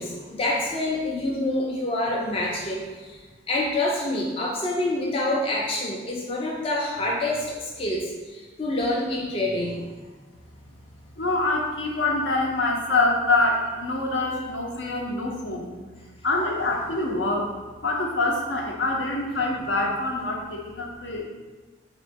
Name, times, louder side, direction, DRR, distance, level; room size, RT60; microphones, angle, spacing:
voice 1, 0.0-3.2 3.5-10.0, left 1 dB, 30° left, -3 dB, 0.4 m, -27 dB
voice 2, 11.1-15.8 16.2-17.5 17.8-21.2, left 2 dB, 70° left, 0 dB, 0.7 m, -25 dB
3.9 x 3.0 x 3.5 m, 1.3 s
head